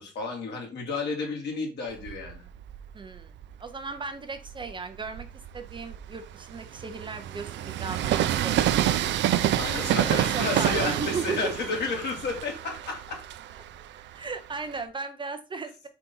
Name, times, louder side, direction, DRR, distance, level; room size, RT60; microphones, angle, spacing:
voice 1, 0.0-2.4 9.6-13.2, left 4 dB, 60° left, 1 dB, 2.6 m, -32 dB
Train, 1.9-3.6 4.2-14.8, right 12 dB, 70° right, 0.6 m, -29 dB
voice 2, 2.9-3.3 3.6-5.3 5.5-8.1 8.4-8.5 8.9-9.2 10.2-11.5 14.1-15.9, right 4 dB, 25° right, 7 dB, 0.8 m, -35 dB
4.6 x 4.2 x 5.4 m, 0.34 s
cardioid pair, 115°, 20 cm